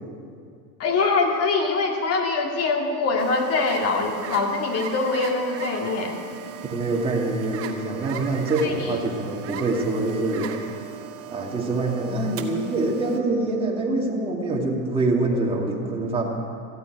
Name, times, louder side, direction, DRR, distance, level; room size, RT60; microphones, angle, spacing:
voice 1, 0.8-6.2 8.6-8.9, left 4 dB, 30° left, 2 dB, 2.3 m, -23 dB
sound 1, 3.2-13.2, right 9 dB, 30° right, 1.2 m, -38 dB
voice 2, 6.7-10.5 11.3-16.2, right 2 dB, 10° right, -2 dB, 2.3 m, -25 dB
14.5 x 8.7 x 9.1 m, 2.3 s
supercardioid pair, 120°, 45 cm